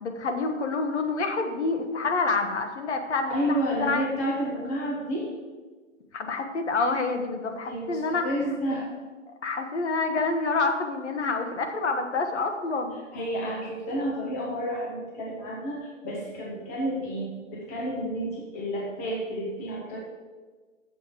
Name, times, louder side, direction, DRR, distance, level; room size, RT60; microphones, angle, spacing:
voice 1, 0.0-4.1 6.1-8.3 8.7-8.8 9.4-13.0, left 3 dB, 60° left, 5 dB, 1.3 m, -27 dB
voice 2, 3.3-5.3 7.7-8.9 13.1-20.0, equal, 10° left, -2 dB, 0.6 m, -30 dB
7.5 x 6.9 x 4.9 m, 1.4 s
hypercardioid pair, 155°, 39 cm